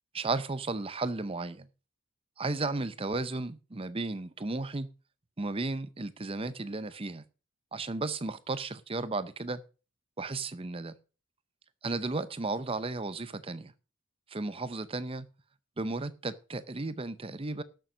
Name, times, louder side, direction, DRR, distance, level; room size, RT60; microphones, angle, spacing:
voice 1, 0.1-1.7 2.4-4.9 5.4-7.2 7.7-9.6 10.2-10.9 11.8-13.7 14.3-15.3 15.8-17.6, right 3 dB, 25° right, 0.6 m, -34 dB
12.0 x 6.9 x 6.2 m
head